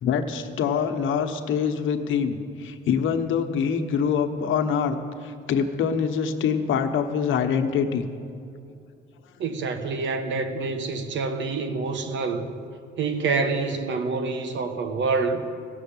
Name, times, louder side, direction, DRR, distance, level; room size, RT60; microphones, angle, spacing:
voice 1, 0.0-4.9 5.2-8.0, left 7 dB, 80° left, 6 dB, 1.1 m, -25 dB
voice 2, 9.4-12.5 13.0-15.4, right 4 dB, 70° right, 7 dB, 1.3 m, -27 dB
16.0 x 6.9 x 8.7 m, 2.5 s
cardioid pair, 90°, 20 cm